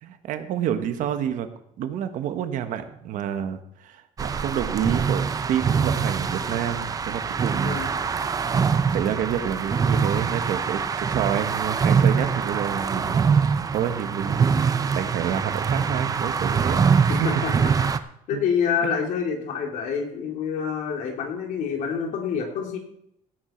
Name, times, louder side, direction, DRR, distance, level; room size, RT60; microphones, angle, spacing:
voice 1, 0.0-1.5 1.8-7.8 8.9-13.3 13.7-17.3 18.3-18.4 18.8-18.9, right 9 dB, 70° right, 9 dB, 1.4 m, -29 dB
sound 1, 4.2-18.0, right 6 dB, 25° right, 0.7 m, -24 dB
voice 2, 17.2-17.9 18.3-22.8, left 6 dB, 70° left, 2 dB, 3.2 m, -27 dB
16.5 x 9.0 x 4.5 m, 0.73 s
cardioid pair, 150°, 14 cm